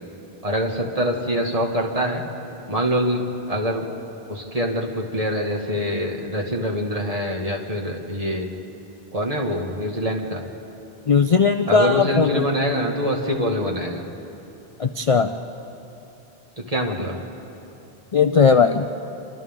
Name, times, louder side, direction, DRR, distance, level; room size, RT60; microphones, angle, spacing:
voice 1, 0.4-2.2 2.7-3.2 3.5-3.9 4.3-8.5 9.1-10.4 11.7-14.0 16.7-17.2, equal, 35° right, 0 dB, 2.1 m, -24 dB
voice 2, 11.1-12.3 14.8-15.3 18.1-18.8, left 5 dB, 40° left, 7 dB, 0.5 m, -17 dB
29.0 x 25.0 x 3.7 m, 2.9 s
omnidirectional pair, 1.1 m